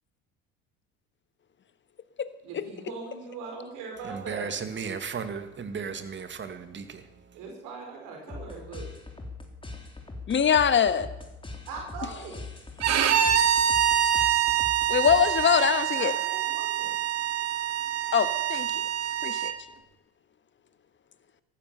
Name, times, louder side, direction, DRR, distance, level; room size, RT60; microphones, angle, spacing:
voice 1, 2.4-4.5 7.3-8.9 11.7-12.5 15.9-17.0, right 4 dB, 70° right, 1 dB, 4.9 m, -40 dB
voice 2, 4.1-7.0, right 6 dB, 35° right, 9 dB, 2.2 m, -35 dB
sound 1, 8.3-15.7, left 3 dB, 15° left, 3.4 m, -42 dB
voice 3, 10.3-11.1 14.9-16.1 18.1-18.8 19.2-19.5, left 8 dB, 35° left, 12 dB, 1.5 m, -23 dB
Bowed string instrument, 12.8-19.5, right 10 dB, 50° right, 2.0 m, -25 dB
14.5 x 12.5 x 6.9 m, 0.96 s
hypercardioid pair, 75°, 32 cm